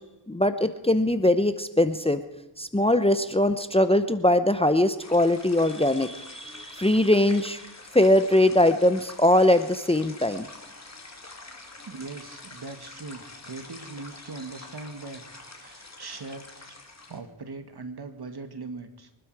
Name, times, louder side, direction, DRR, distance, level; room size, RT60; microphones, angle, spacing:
voice 1, 0.3-2.2 2.6-7.6 7.9-10.5, left 1 dB, 10° left, 11 dB, 0.9 m, -21 dB
sound 1, 5.0-17.2, left 3 dB, 35° left, 2.7 m, -46 dB
voice 2, 11.8-15.2 15.5-16.7 17.1-19.1, right 3 dB, 55° right, 7 dB, 2.1 m, -40 dB
24.0 x 12.0 x 4.9 m, 1.0 s
cardioid pair, 65°, 47 cm